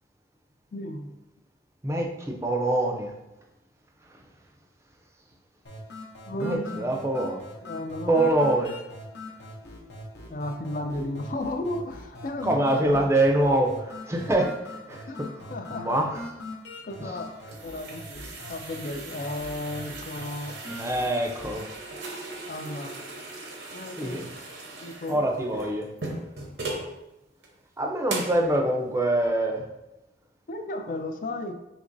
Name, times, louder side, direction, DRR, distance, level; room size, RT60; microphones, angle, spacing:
voice 1, 0.7-1.2 6.3-7.1 7.6-8.4 10.3-13.1 14.4-14.5 15.1-16.0 16.8-17.3 17.6-20.6 21.4-21.6 22.5-23.0 23.7-24.2 24.8-25.3 30.5-31.5, left 1 dB, 45° left, 6 dB, 0.4 m, -34 dB
voice 2, 1.8-3.1 6.4-7.4 8.1-8.7 12.4-15.1 15.7-16.2 17.0-17.1 20.7-21.7 24.0-24.3 25.1-25.9 27.8-29.6, right 1 dB, 15° right, 1 dB, 0.4 m, -25 dB
sound 1, 5.6-21.6, left 1 dB, 70° left, 0.8 m, -42 dB
sound 2, 17.1-26.9 27.4-27.5 28.1-28.4, right 2 dB, 80° right, 0.8 m, -39 dB
5.1 x 2.9 x 2.5 m, 0.94 s
head